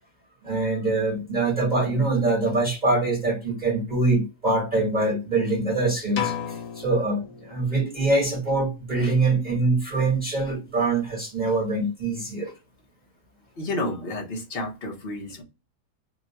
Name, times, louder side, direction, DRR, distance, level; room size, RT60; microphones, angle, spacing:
voice 1, 0.4-12.5, right 2 dB, 35° right, 1.0 m, -24 dB
sound 1, 6.1-8.0, left 9 dB, 70° left, 1.1 m, -33 dB
voice 2, 13.6-15.4, left 1 dB, 45° left, 1.1 m, -31 dB
2.8 x 2.2 x 4.0 m
omnidirectional pair, 1.7 m